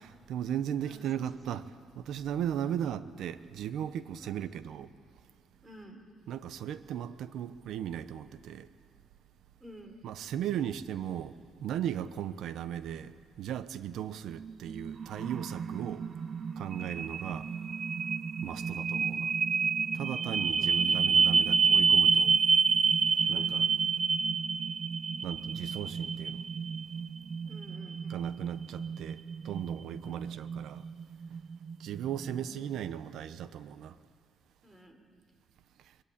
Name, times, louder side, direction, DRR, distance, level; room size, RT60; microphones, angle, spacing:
voice 1, 0.0-1.6 1.9-4.9 6.3-8.7 10.0-16.1 16.6-17.5 18.4-19.3 19.9-22.4 23.3-23.7 25.2-26.4 28.1-30.8 31.8-34.0, right 10 dB, 80° right, 0.9 m, -37 dB
voice 2, 0.8-1.6 2.6-2.8 4.2-4.5 5.6-6.0 9.6-10.0 18.5-18.8 20.6-21.1 23.2-23.6 27.4-28.0 30.0-30.4 32.1-32.6 34.6-35.0, right 1 dB, 20° right, 4.3 m, -52 dB
sound 1, 14.3-32.4, right 5 dB, 45° right, 0.7 m, -29 dB
22.5 x 21.5 x 8.8 m
cardioid pair, 90°, 0 cm